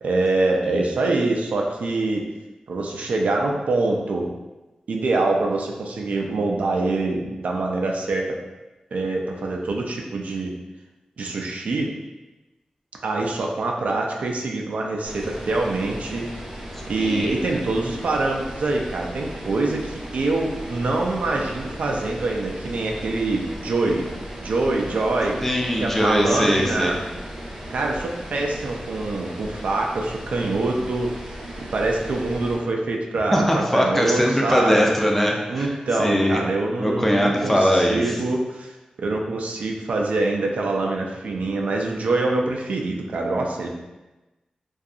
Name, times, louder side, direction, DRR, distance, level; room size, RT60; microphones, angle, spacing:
voice 1, 0.0-2.2 2.7-4.3 4.9-8.4 8.9-10.5 11.2-11.9 13.0-16.2 16.9-24.1 24.4-25.5 25.8-26.9 27.7-31.1 31.7-35.0 35.5-43.7, right 2 dB, 75° right, 0 dB, 0.3 m, -25 dB
sound 1, 15.0-32.5, equal, 25° right, 0.7 m, -36 dB
voice 2, 17.0-17.4 25.4-27.0 33.3-35.7 36.0-36.4 36.8-38.2, equal, 10° left, -1 dB, 0.4 m, -21 dB
2.7 x 2.3 x 2.4 m, 1.1 s
wide cardioid pair, 100°, 2 cm